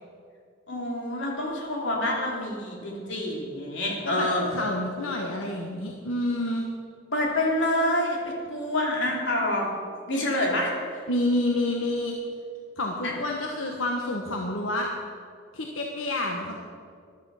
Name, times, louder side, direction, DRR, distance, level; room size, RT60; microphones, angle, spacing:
voice 1, 0.7-4.5 7.1-9.7 10.1-11.0 13.0-13.1, left 1 dB, 65° left, -2 dB, 3.3 m, -27 dB
voice 2, 4.0-6.6 11.1-12.2 12.8-14.9 15.5-16.6, left 1 dB, 85° left, 1 dB, 1.3 m, -28 dB
14.5 x 12.0 x 5.6 m, 2.2 s
head